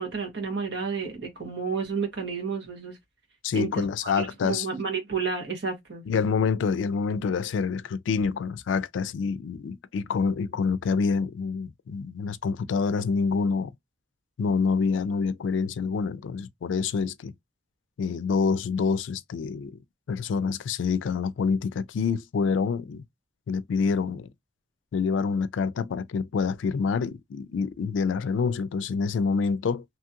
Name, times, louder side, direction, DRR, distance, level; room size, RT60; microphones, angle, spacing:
voice 1, 0.0-3.0 3.5-6.2, right 5 dB, 65° right, 1.2 m, -31 dB
voice 2, 3.4-4.7 6.1-13.7 14.4-17.3 18.0-19.8 20.1-23.0 23.5-24.3 24.9-29.8, left 5 dB, 90° left, 0.3 m, -27 dB
2.8 x 2.4 x 2.8 m
head